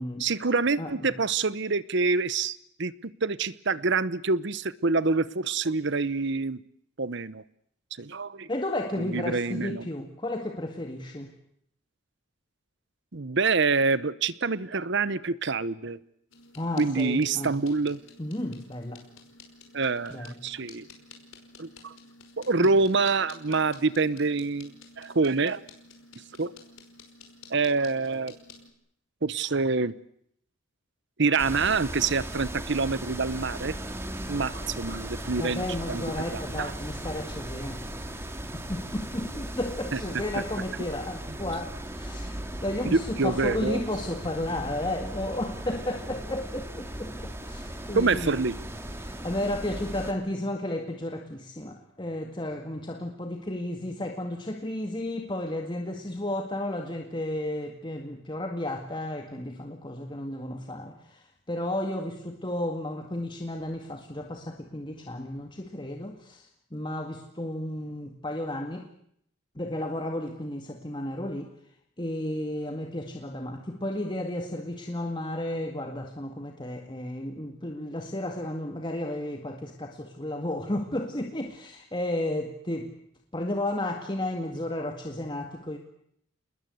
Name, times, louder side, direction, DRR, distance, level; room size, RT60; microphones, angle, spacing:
voice 1, 0.2-2.9 3.2-6.6 7.0-7.4 8.0-8.5 9.0-9.9 13.1-16.0 16.8-18.0 19.7-20.9 21.6-21.9 22.4-25.6 26.4-26.5 27.5-28.4 29.2-29.9 31.2-33.8 34.3-36.0 36.3-36.7 39.9-40.0 42.9-43.8 47.9-48.5, right 4 dB, 55° right, 17 dB, 1.0 m, -26 dB
voice 2, 0.8-1.1 8.5-11.3 16.6-17.5 18.2-19.0 20.1-20.4 22.6-22.7 35.4-37.8 38.5-48.4 49.0-68.9 69.6-71.5 72.0-82.9 83.3-85.8, left 1 dB, 20° left, 3 dB, 2.1 m, -33 dB
sound 1, 16.3-28.7, left 4 dB, 70° left, 5.3 m, -52 dB
sound 2, 31.4-50.1, right 1 dB, 10° right, 2.5 m, -37 dB
28.5 x 21.0 x 7.9 m, 0.70 s
head